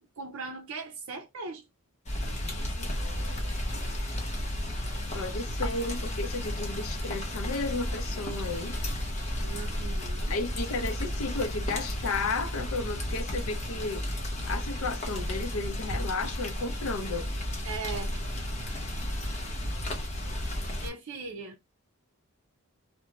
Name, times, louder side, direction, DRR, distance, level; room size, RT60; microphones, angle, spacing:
voice 1, 0.2-1.6 9.4-10.3 17.6-18.1 20.8-21.6, right 4 dB, 60° right, 0.5 m, -39 dB
Rain, 2.1-20.9, left 1 dB, 30° left, 0.8 m, -33 dB
voice 2, 2.5-3.6 5.1-8.8 10.3-14.0 14.5-17.3, left 3 dB, 75° left, 0.5 m, -34 dB
3.0 x 2.1 x 2.3 m
head